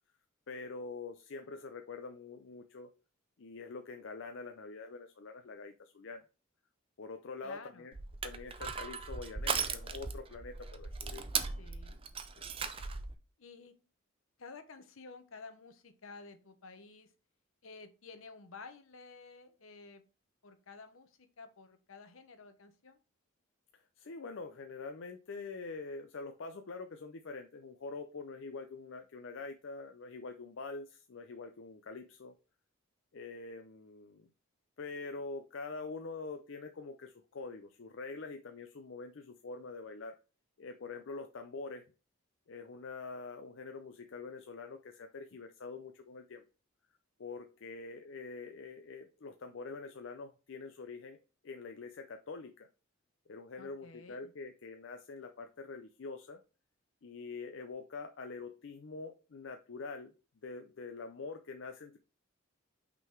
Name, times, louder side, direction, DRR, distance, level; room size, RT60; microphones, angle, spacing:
voice 1, 0.5-2.9 3.4-6.2 7.0-7.9 8.2-11.3 12.4-12.5 23.7-32.3 33.1-34.3 34.8-40.2 40.6-41.8 42.5-46.4 47.2-51.2 51.4-52.7 53.3-56.4 57.0-60.1 60.4-62.0, left 4 dB, 65° left, 6 dB, 0.5 m, -45 dB
voice 2, 7.4-7.9 11.6-12.1 13.4-13.7 14.4-17.1 17.6-20.0 20.4-23.0 53.6-54.3, left 4 dB, 80° left, 9 dB, 1.0 m, -52 dB
Crushing, 7.9-13.1, right 5 dB, 25° right, 0.5 m, -38 dB
5.8 x 3.9 x 4.4 m, 0.34 s
head